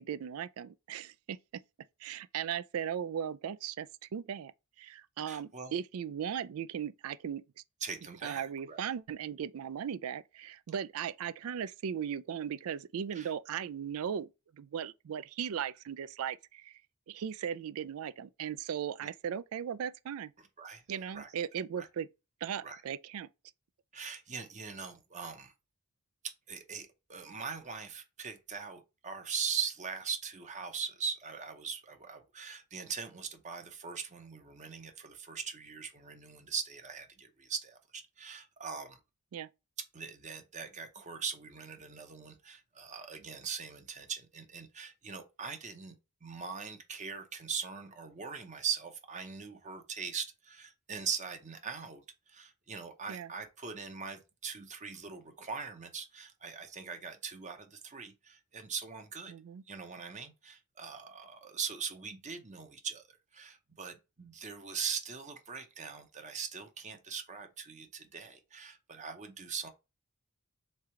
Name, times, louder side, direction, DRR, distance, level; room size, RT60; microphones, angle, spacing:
voice 1, 0.0-1.6 2.0-4.5 4.8-7.4 8.2-14.3 14.5-16.7 17.1-20.3 20.9-22.1 22.4-23.3 39.3-39.5 53.1-53.3 59.3-59.6, right 8 dB, 75° right, 0.3 m, -37 dB
voice 2, 5.2-5.7 7.8-8.8 13.1-13.3 20.6-20.8 21.1-21.3 21.8-21.9 22.6-22.8 23.9-25.5 26.2-39.0 39.9-45.9 46.2-52.0 52.3-59.3 59.7-69.7, right 6 dB, 35° right, 0.8 m, -41 dB
3.6 x 3.3 x 4.4 m
head